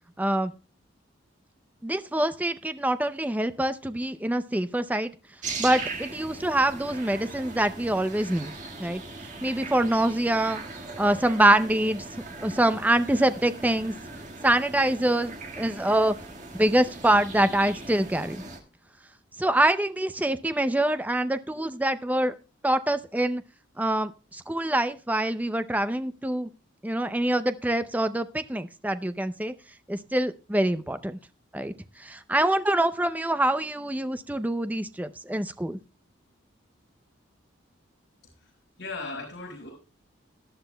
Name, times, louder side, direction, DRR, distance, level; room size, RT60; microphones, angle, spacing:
voice 1, 0.2-0.5 1.8-5.1 5.6-8.5 8.8-9.0 9.4-10.6 11.0-12.0 12.4-13.9 14.4-16.1 16.5-18.4 19.4-22.3 22.6-23.4 23.8-26.5 26.8-29.5 29.9-31.2 31.5-31.7 32.0-35.8, right 1 dB, 10° right, 11 dB, 0.4 m, -25 dB
sound 1, 5.4-18.6, right 3 dB, 35° right, 1.8 m, -39 dB
voice 2, 38.8-39.7, left 3 dB, 60° left, -4 dB, 5.0 m, -37 dB
18.5 x 11.0 x 2.2 m, 0.33 s
head